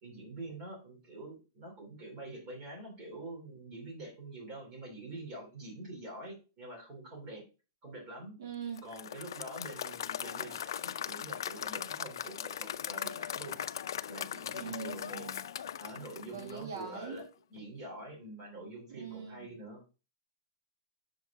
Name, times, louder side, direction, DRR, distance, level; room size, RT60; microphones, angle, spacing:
voice 1, 0.0-7.5 7.8-8.3 8.8-13.6 14.1-15.3 15.8-19.8, right 2 dB, 25° right, 2.8 m, -46 dB
voice 2, 8.4-8.9 14.6-15.4 16.3-17.2 18.9-19.5, right 6 dB, 55° right, 1.8 m, -42 dB
Applause / Crowd, 8.8-16.9, left 9 dB, 80° left, 0.4 m, -39 dB
6.7 x 4.8 x 3.4 m
supercardioid pair, 175°, 2 cm